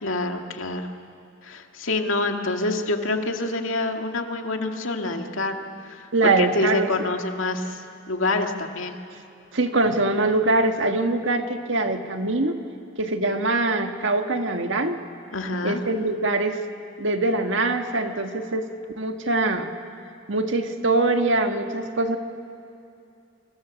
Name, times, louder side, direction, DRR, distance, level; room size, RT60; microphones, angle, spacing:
voice 1, 0.0-0.9 1.4-7.8 8.1-9.0 15.3-15.8, left 2 dB, 90° left, 4 dB, 2.1 m, -27 dB
voice 2, 6.1-6.9 9.5-12.5 13.0-15.0 15.6-16.6 17.0-18.7 19.0-19.7 20.3-22.2, right 2 dB, 70° right, 5 dB, 1.7 m, -23 dB
27.5 x 25.0 x 7.2 m, 2.6 s
head